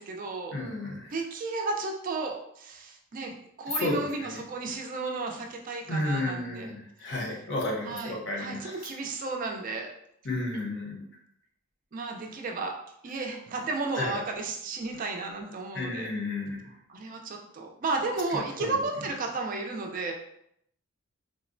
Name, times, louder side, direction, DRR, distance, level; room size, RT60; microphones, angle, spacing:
voice 1, 0.0-0.6 1.1-6.7 7.8-9.9 11.9-12.7 13.0-16.1 16.9-20.1, right 3 dB, 40° right, 2 dB, 0.4 m, -33 dB
voice 2, 0.5-1.1 3.8-4.4 5.9-8.8 10.2-11.0 14.0-14.2 15.7-16.6 18.6-18.7, left 2 dB, 55° left, -1 dB, 0.7 m, -32 dB
3.6 x 2.0 x 2.5 m, 0.73 s
head